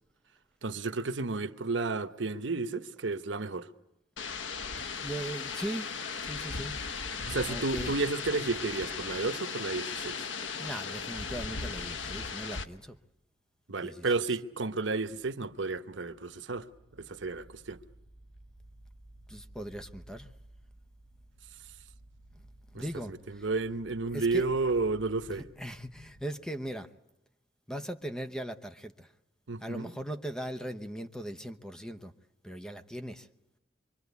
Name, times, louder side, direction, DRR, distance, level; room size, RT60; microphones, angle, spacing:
voice 1, 0.6-3.7 7.2-10.2 13.7-16.6 17.0-17.8 22.7-25.4 29.5-29.9, right 3 dB, 80° right, 1.0 m, -32 dB
sound 1, 4.2-12.7, left 5 dB, 90° left, 1.0 m, -37 dB
voice 2, 5.0-5.9 6.2-6.8 7.5-7.9 10.6-13.0 13.8-14.2 19.3-20.3 22.7-23.5 24.1-24.5 25.3-26.9 27.7-29.1 29.6-32.1 32.4-33.3, equal, 5° left, 0.9 m, -39 dB
sound 2, 13.5-26.2, right 1 dB, 20° left, 3.8 m, -56 dB
25.0 x 24.0 x 8.2 m
head